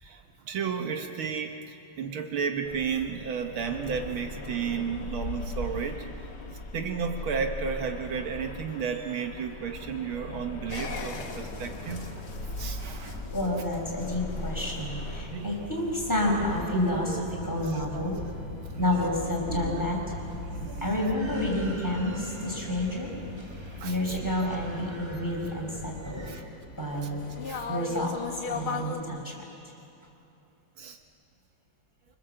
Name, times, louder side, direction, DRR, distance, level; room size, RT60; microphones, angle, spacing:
voice 1, 0.0-6.0 6.7-13.3 15.3-15.6 16.9-17.2 17.6-18.0 19.5-19.8 20.6-20.9 23.8-24.2 26.3-26.4 27.5-27.7 30.8-31.0, right 6 dB, 75° right, 5 dB, 1.9 m, -33 dB
sound 1, 2.6-15.2, left 2 dB, 55° left, 2.4 m, -39 dB
sound 2, 10.7-29.0, left 4 dB, 80° left, 3.0 m, -40 dB
sound 3, 11.2-26.4, left 1 dB, 15° right, 1.7 m, -46 dB
voice 2, 13.3-18.2 18.8-20.0 20.8-23.1 23.8-26.3 26.8-27.2 27.7-29.4, left 1 dB, 10° left, -2 dB, 4.9 m, -29 dB
25.5 x 24.5 x 7.7 m, 2.8 s
omnidirectional pair, 2.3 m